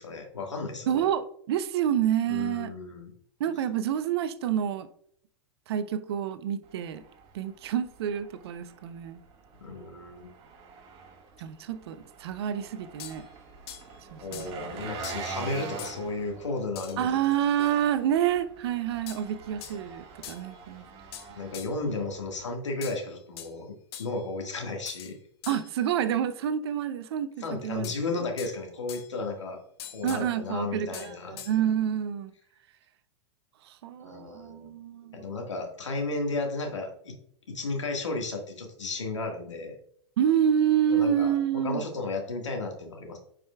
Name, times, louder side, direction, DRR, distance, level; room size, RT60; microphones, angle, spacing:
voice 1, 0.0-0.9 2.3-3.1 9.6-10.3 14.2-17.1 21.4-23.7 24.0-25.1 27.4-29.6 29.9-31.4 34.0-34.7 35.1-37.2 37.5-39.8 40.9-41.3 41.6-43.2, left 3 dB, 80° left, 2 dB, 1.7 m, -33 dB
voice 2, 0.9-2.7 3.4-4.9 5.7-7.0 7.3-9.2 11.4-13.3 14.1-14.7 17.0-20.8 25.5-28.0 30.0-32.3 33.6-35.3 40.2-41.8, right 9 dB, 60° right, 12 dB, 0.6 m, -28 dB
Engine, 6.6-22.4, right 5 dB, 40° right, 1.7 m, -45 dB
sound 1, 13.0-13.2 13.7-13.9 14.3-14.6 15.0-15.3 15.8-16.0 16.8-17.0 17.3-17.8 19.1-19.3 19.6-19.8 20.2-20.5 21.1-21.8 22.8-23.6 23.9-24.2 24.9-25.1 25.4-25.8 27.8-28.6 28.9-29.2 29.8-30.3 30.9-31.6, left 10 dB, 55° left, 1.0 m, -44 dB
9.4 x 4.9 x 2.3 m, 0.66 s
hypercardioid pair, 100°, 15 cm